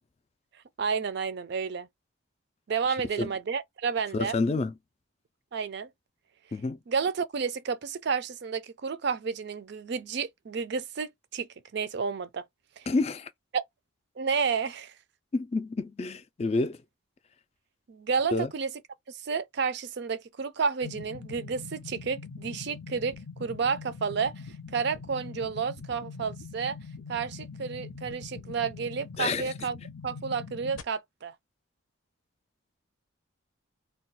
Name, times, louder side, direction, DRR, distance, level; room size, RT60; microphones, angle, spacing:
voice 1, 0.8-1.9 2.7-4.4 5.5-5.9 6.9-11.5 11.7-12.4 12.8-12.9 13.5-13.6 14.2-14.9 17.9-18.7 19.2-23.1 23.4-24.3 24.7-26.8 27.1-29.8 30.0-31.3, right 5 dB, 55° right, 0.4 m, -31 dB
voice 2, 4.1-4.7 6.5-6.8 12.9-13.3 15.3-16.8 18.3-18.5 29.2-29.5, left 3 dB, 30° left, 0.3 m, -28 dB
sound 1, 20.8-30.8, left 4 dB, 85° left, 0.7 m, -43 dB
2.3 x 2.3 x 3.9 m
head